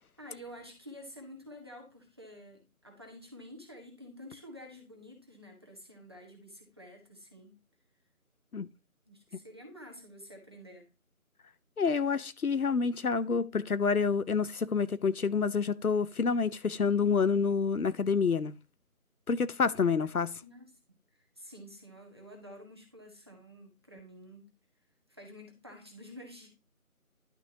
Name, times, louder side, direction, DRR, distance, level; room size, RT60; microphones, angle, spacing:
voice 1, 0.2-7.6 9.1-10.9 19.8-20.0 20.4-24.5 25.1-26.5, equal, 20° right, 1.3 m, -50 dB
voice 2, 11.8-18.5 19.3-20.4, left 5 dB, 80° left, 0.8 m, -28 dB
11.0 x 6.2 x 2.8 m
figure-of-eight pair, 165°, 43 cm